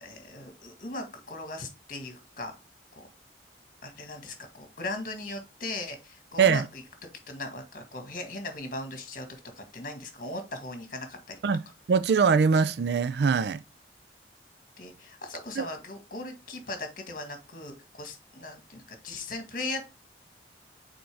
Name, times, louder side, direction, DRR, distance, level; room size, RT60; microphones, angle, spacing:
voice 1, 0.0-2.6 3.0-3.1 3.8-6.8 7.3-11.4 14.8-19.8, left 2 dB, 50° left, 1.7 m, -38 dB
voice 2, 11.9-13.6 15.6-15.7, right 5 dB, 70° right, 0.4 m, -22 dB
6.3 x 4.5 x 3.4 m
head